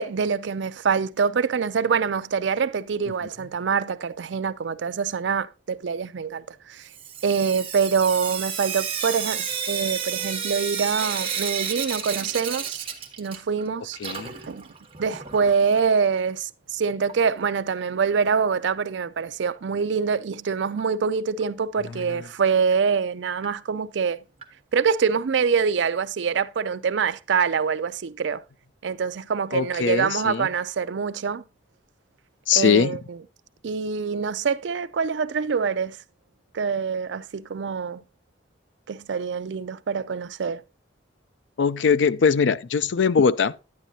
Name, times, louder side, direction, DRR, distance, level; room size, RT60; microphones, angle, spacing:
voice 1, 0.0-6.9 7.2-12.9 13.2-14.0 14.5-14.6 15.0-24.2 24.7-28.4 28.8-31.4 32.5-33.2 33.6-36.0 36.5-38.0 38.9-40.6, right 6 dB, 70° right, 0.4 m, -25 dB
Sink (filling or washing) / Drip, 6.9-13.7 13.9-15.9 17.0-17.1 17.4-17.5 17.8-17.9 20.8-20.9 21.4-21.5 22.0-22.1 22.7-22.8 23.4-23.5 24.4-24.5, right 7 dB, 30° right, 1.3 m, -31 dB
voice 2, 14.0-14.3 22.1-22.2 29.5-30.5 32.5-33.0 41.6-43.5, left 6 dB, 75° left, 0.5 m, -21 dB
10.5 x 9.1 x 2.7 m
head